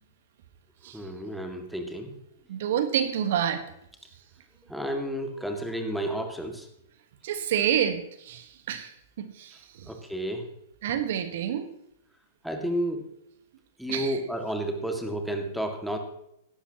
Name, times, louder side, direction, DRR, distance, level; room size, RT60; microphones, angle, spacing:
voice 1, 0.9-2.2 4.7-6.7 9.9-10.5 12.4-13.0 13.8-16.0, right 1 dB, ahead, 4 dB, 2.0 m, -31 dB
voice 2, 2.5-3.6 7.2-9.9 10.8-11.7 13.9-14.2, right 9 dB, 55° right, 9 dB, 1.3 m, -28 dB
17.0 x 12.5 x 2.9 m, 0.77 s
figure-of-eight pair, 105°, 0 cm